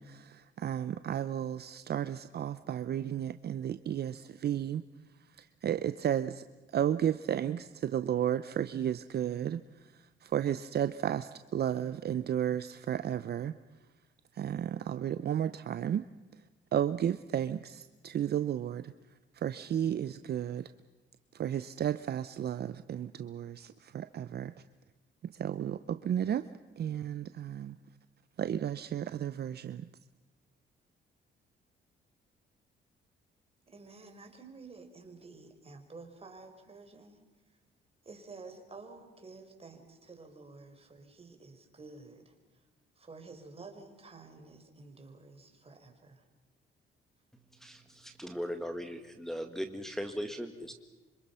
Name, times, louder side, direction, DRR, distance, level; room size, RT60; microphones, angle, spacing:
voice 1, 0.0-4.8 5.4-6.4 6.7-13.5 14.3-16.0 16.7-18.9 19.3-20.7 21.3-24.5 25.3-26.5 26.8-27.8 28.4-29.9, right 10 dB, 55° right, 0.7 m, -33 dB
voice 2, 33.6-37.6 38.0-42.7 42.9-46.3, right 3 dB, 30° right, 4.6 m, -51 dB
voice 3, 47.6-50.7, equal, ahead, 1.8 m, -38 dB
26.5 x 26.0 x 5.7 m
cardioid pair, 90°, 20 cm